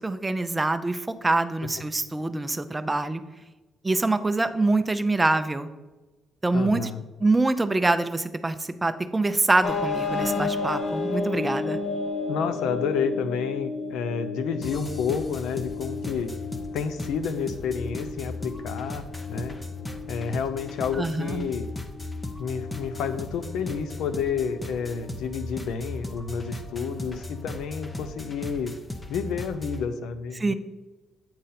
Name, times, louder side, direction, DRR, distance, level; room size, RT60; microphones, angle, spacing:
voice 1, 0.0-3.2 3.8-5.7 6.4-6.9 7.2-11.8 21.0-21.5 30.4-30.5, right 2 dB, 15° right, 10 dB, 0.5 m, -25 dB
voice 2, 6.5-7.0 12.3-16.3 16.7-19.0 19.3-19.6 20.1-21.7 22.4-28.7 29.1-30.5, left 6 dB, 85° left, 11 dB, 0.5 m, -30 dB
sound 1, 9.6-25.1, left 3 dB, 45° left, 0.9 m, -33 dB
sound 2, 14.6-29.9, left 2 dB, 20° left, 0.7 m, -37 dB
8.7 x 3.9 x 4.2 m, 1.2 s
cardioid pair, 90°, 0 cm